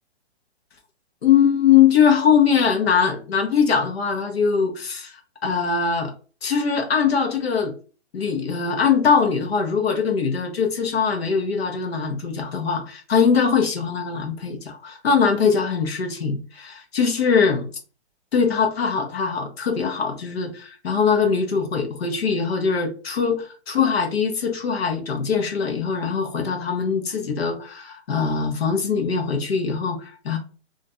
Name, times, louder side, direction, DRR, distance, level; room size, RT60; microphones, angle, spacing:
voice 1, 1.2-6.1 6.4-7.7 8.1-17.7 18.3-30.4, left 6 dB, 60° left, 0.8 m, -21 dB
2.5 x 2.1 x 3.6 m
hypercardioid pair, 180°, 34 cm